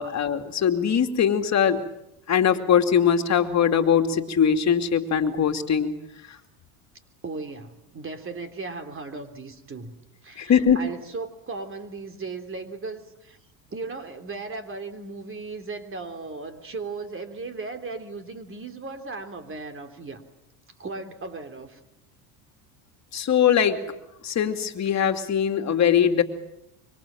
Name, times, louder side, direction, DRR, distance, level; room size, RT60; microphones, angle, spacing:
voice 1, 0.0-1.9 2.3-6.0 10.4-10.8 23.1-23.8 24.2-26.2, left 8 dB, 40° left, 6 dB, 2.7 m, -21 dB
voice 2, 7.2-9.9 10.2-13.4 13.7-20.2 20.8-21.8, right 3 dB, 30° right, 8 dB, 3.4 m, -36 dB
25.5 x 24.5 x 7.7 m, 0.87 s
supercardioid pair, 90°, 44 cm